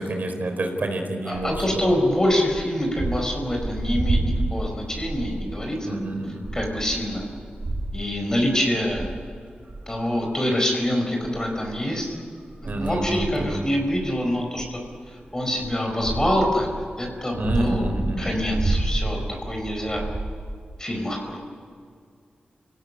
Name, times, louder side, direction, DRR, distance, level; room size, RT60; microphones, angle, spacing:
voice 1, 0.0-1.9 5.8-6.4 12.6-13.6 17.4-18.3, right 1 dB, 60° right, 4 dB, 4.6 m, -28 dB
voice 2, 1.3-6.0 6.5-7.2 7.9-9.1 9.9-12.2 12.6-14.8 15.3-16.7 17.0-17.9 18.2-20.0 20.8-21.4, left 1 dB, 20° left, 2 dB, 4.8 m, -25 dB
sound 1, 1.3-5.7 6.0-6.1 6.4-8.1 8.7-9.1 9.7-10.8 11.2-16.8 17.3-20.5, right 2 dB, 40° right, 7.3 m, -30 dB
28.5 x 18.0 x 9.7 m, 2.1 s
wide cardioid pair, 105°, 3 cm